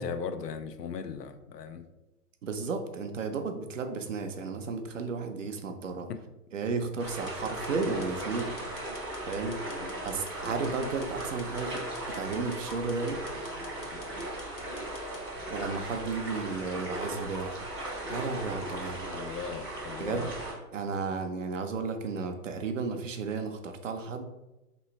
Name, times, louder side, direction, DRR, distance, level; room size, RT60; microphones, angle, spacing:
voice 1, 0.0-1.9 6.1-6.2 9.8-9.9 13.9-14.0 19.1-20.3, left 6 dB, 80° left, 9 dB, 0.6 m, -38 dB
voice 2, 2.4-6.1 6.5-8.6 9.3-9.6 10.0-13.2 15.5-17.6 18.1-19.1 20.0-20.3 20.7-24.3, right 4 dB, 55° right, 6 dB, 0.5 m, -33 dB
sound 1, 7.0-20.5, right 1 dB, 15° left, 0.5 m, -37 dB
sound 2, 7.1-15.2, left 4 dB, 50° left, 0.8 m, -52 dB
3.2 x 3.0 x 4.4 m, 0.99 s
hypercardioid pair, 170°, 48 cm